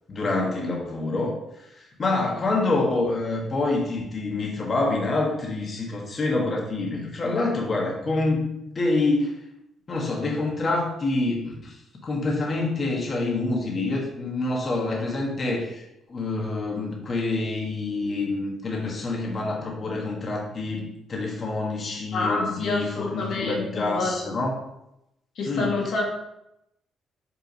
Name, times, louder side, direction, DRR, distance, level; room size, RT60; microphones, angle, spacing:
voice 1, 0.1-8.5 8.7-9.3 9.9-24.5 25.4-25.7, left 2 dB, 40° left, -2 dB, 1.6 m, -27 dB
voice 2, 22.1-24.2 25.4-26.0, left 3 dB, 70° left, -2 dB, 1.7 m, -27 dB
5.8 x 3.8 x 5.1 m, 0.84 s
cardioid pair, 90°, 0 cm